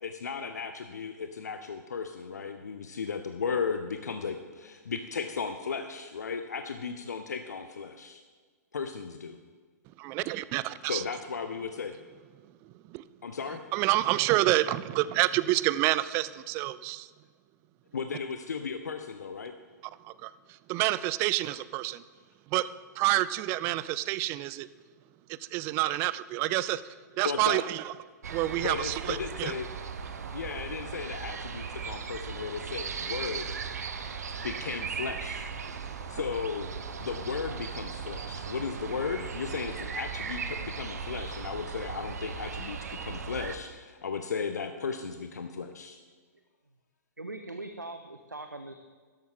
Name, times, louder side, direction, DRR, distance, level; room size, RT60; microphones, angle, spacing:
voice 1, 0.0-8.2 8.7-9.4 10.8-12.0 13.2-13.6 17.9-19.5 27.2-27.6 28.6-29.7 30.3-33.6 34.4-35.5 36.1-36.7 37.0-46.0, left 5 dB, 65° left, 8 dB, 0.7 m, -35 dB
voice 2, 10.0-11.0 12.9-13.0 13.7-17.1 20.1-20.3 20.7-22.0 22.5-22.7 23.0-24.7 25.4-26.8 27.2-27.9 28.3-29.5 36.1-36.2, right 16 dB, 25° right, 17 dB, 0.4 m, -28 dB
sound 1, 28.2-43.6, right 6 dB, 60° right, 1.0 m, -37 dB
voice 3, 47.2-48.7, right 2 dB, 85° right, 7 dB, 0.7 m, -41 dB
13.0 x 11.5 x 3.8 m, 1.5 s
figure-of-eight pair, 110°, 10 cm